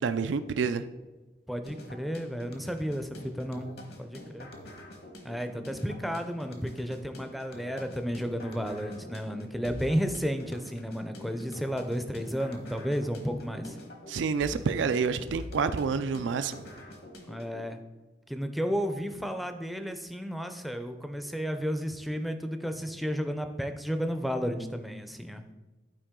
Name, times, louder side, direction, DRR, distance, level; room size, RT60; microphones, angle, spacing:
voice 1, 0.0-0.9 14.1-16.6, right 5 dB, 80° right, 11 dB, 0.4 m, -28 dB
voice 2, 1.5-3.7 4.0-4.5 5.2-13.8 17.3-17.8 18.3-25.4, equal, ahead, 7 dB, 0.4 m, -32 dB
sound 1, 1.7-17.7, left 1 dB, 60° left, 1.1 m, -46 dB
11.5 x 4.8 x 3.7 m, 1.2 s
head